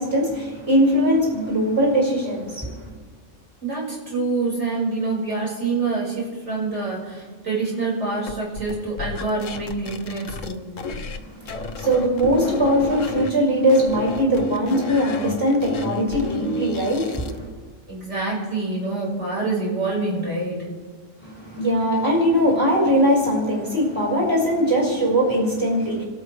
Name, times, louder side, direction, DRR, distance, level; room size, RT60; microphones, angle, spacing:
voice 1, 0.0-2.9 11.2-17.5 21.2-26.0, equal, 20° right, -4 dB, 5.3 m, -21 dB
voice 2, 3.6-10.7 17.9-20.7, right 3 dB, 65° right, -5 dB, 5.7 m, -26 dB
sound 1, 8.3-11.2 11.5-13.3 13.7-17.4, left 2 dB, 85° left, 1.4 m, -31 dB
29.5 x 13.0 x 3.3 m, 1.5 s
omnidirectional pair, 1.3 m